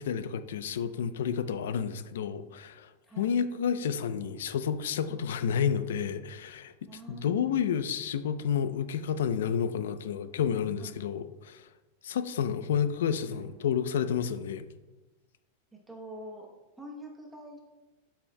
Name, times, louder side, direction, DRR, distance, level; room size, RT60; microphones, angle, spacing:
voice 1, 0.0-2.9 3.2-6.7 7.1-11.6 12.0-14.7, left 7 dB, 80° left, 12 dB, 0.5 m, -30 dB
voice 2, 3.1-3.4 5.1-5.2 6.9-7.5 10.8-11.0 13.3-13.5 15.9-16.5 16.8-17.6, right 1 dB, 5° right, -1 dB, 0.9 m, -45 dB
12.0 x 7.3 x 2.2 m, 1.1 s
supercardioid pair, 180°, 0 cm